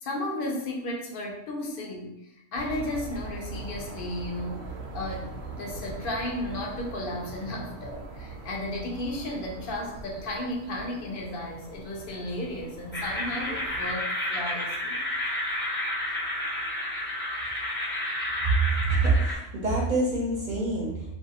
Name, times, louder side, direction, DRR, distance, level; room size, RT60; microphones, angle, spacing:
voice 1, 0.0-5.3 5.6-15.0, left 1 dB, 60° left, 0 dB, 0.6 m, -34 dB
sound 1, 2.5-14.0, right 3 dB, 85° right, 0.9 m, -41 dB
sound 2, 12.9-19.3, left 1 dB, 15° left, 0.5 m, -31 dB
voice 2, 18.8-21.2, right 3 dB, 50° right, -4 dB, 0.6 m, -26 dB
2.5 x 2.3 x 2.7 m, 0.82 s
omnidirectional pair, 1.3 m